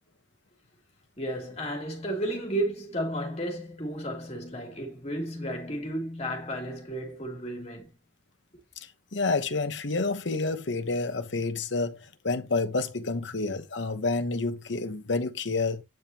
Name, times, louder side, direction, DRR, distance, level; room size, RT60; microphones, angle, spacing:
voice 1, 1.2-7.9, right 1 dB, 35° left, 3.1 m, -33 dB
voice 2, 8.8-15.8, left 3 dB, 80° left, 1.1 m, -29 dB
9.4 x 5.4 x 2.9 m
head